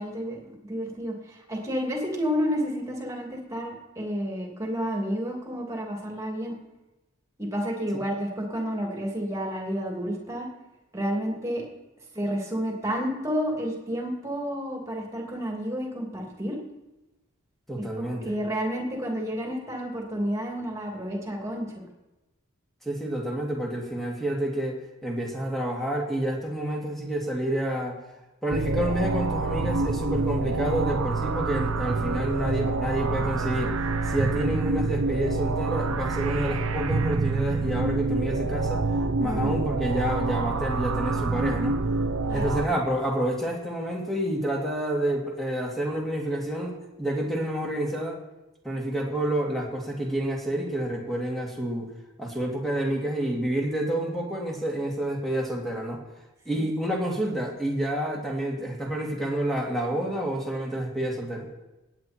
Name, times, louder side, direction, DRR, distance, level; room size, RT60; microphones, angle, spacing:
voice 1, 0.0-6.6 7.4-10.5 10.9-11.6 12.1-16.6 17.8-21.8 39.2-39.6 42.3-42.5 56.6-56.7, equal, 15° right, 0 dB, 2.9 m, -30 dB
voice 2, 17.7-18.4 22.8-28.0 28.4-38.9 39.2-41.8 42.3-48.2 48.6-51.9 52.2-56.0 56.5-61.5, right 1 dB, ahead, -1 dB, 2.4 m, -29 dB
sound 1, 28.5-42.7, right 3 dB, 70° right, 0.8 m, -27 dB
17.5 x 8.9 x 4.5 m, 1.0 s
head